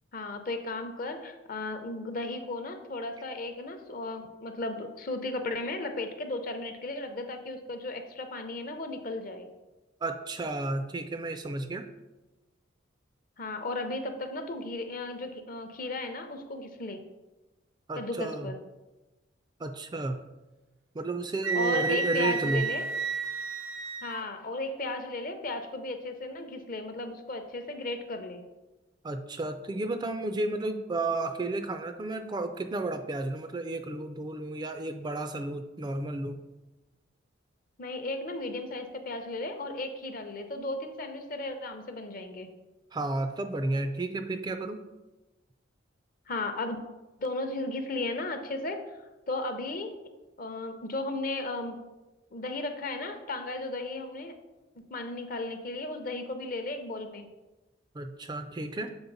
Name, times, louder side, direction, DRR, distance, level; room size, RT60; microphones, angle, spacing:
voice 1, 0.1-9.5 13.4-17.0 18.0-18.6 21.5-22.8 24.0-28.4 37.8-42.5 46.3-46.8 47.2-48.8 49.3-49.9 50.4-51.8 52.3-54.3 54.9-57.3, left 2 dB, 45° left, 7 dB, 0.6 m, -35 dB
voice 2, 10.0-11.9 17.9-18.5 19.6-20.2 20.9-22.6 29.0-36.4 42.9-44.8 57.9-58.9, right 2 dB, 20° right, 8 dB, 0.3 m, -32 dB
Wind instrument woodwind instrument, 21.4-24.2, right 5 dB, 75° right, 0.6 m, -31 dB
7.0 x 4.2 x 3.9 m, 1.1 s
head